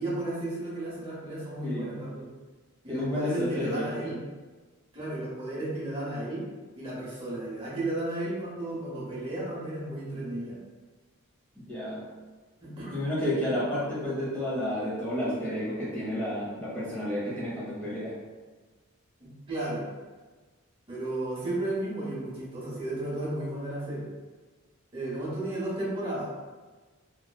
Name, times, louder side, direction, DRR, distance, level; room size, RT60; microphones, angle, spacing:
voice 1, 0.0-2.3 2.8-4.2 4.9-6.4 6.8-10.6 12.6-13.0 19.2-19.9 20.9-24.1 24.9-26.3, right 1 dB, 25° right, -7 dB, 0.9 m, -33 dB
voice 2, 2.9-3.9 11.7-12.0 12.9-18.1, left 1 dB, 5° left, -8 dB, 0.8 m, -31 dB
3.0 x 2.9 x 2.2 m, 1.3 s
head